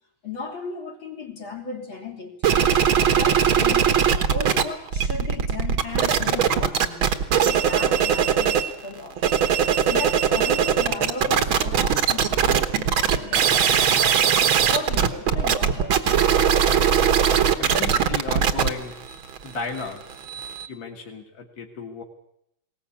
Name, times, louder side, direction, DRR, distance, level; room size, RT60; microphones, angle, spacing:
voice 1, 0.2-4.0 4.3-14.4 14.7-16.5, left 3 dB, 70° left, 1 dB, 3.9 m, -35 dB
sound 1, 2.4-4.6 4.9-8.7 9.1-20.7, right 8 dB, 75° right, 2.1 m, -20 dB
voice 2, 17.6-19.0 19.4-20.0 20.7-22.0, left 4 dB, 50° left, 2 dB, 2.5 m, -34 dB
20.5 x 18.5 x 8.6 m, 0.76 s
omnidirectional pair, 2.3 m